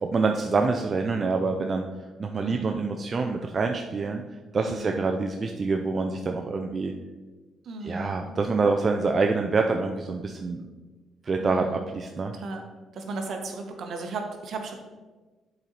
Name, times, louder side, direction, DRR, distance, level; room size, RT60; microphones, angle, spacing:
voice 1, 0.0-1.8 2.2-4.2 4.5-6.9 7.8-10.6 11.2-12.3, right 4 dB, 40° right, 3 dB, 0.5 m, -26 dB
voice 2, 2.3-2.8 4.5-5.0 7.6-8.3 11.4-11.8 12.3-12.7 12.9-14.8, right 3 dB, 65° right, 4 dB, 1.1 m, -36 dB
7.7 x 4.3 x 4.0 m, 1.3 s
cardioid pair, 90°, 0 cm